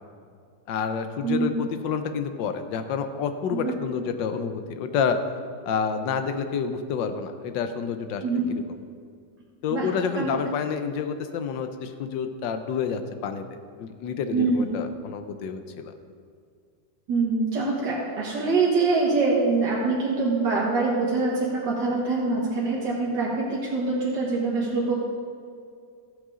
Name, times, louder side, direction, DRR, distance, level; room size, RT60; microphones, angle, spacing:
voice 1, 0.7-5.2 5.6-8.2 8.5-8.6 9.6-13.4 13.8-15.9, left 6 dB, 90° left, 8 dB, 1.4 m, -29 dB
voice 2, 8.2-8.5 9.7-9.9 10.2-10.4 14.3-14.7 17.1-24.9, right 3 dB, 75° right, -6 dB, 2.1 m, -24 dB
13.5 x 8.2 x 3.7 m, 2.2 s
omnidirectional pair, 1.9 m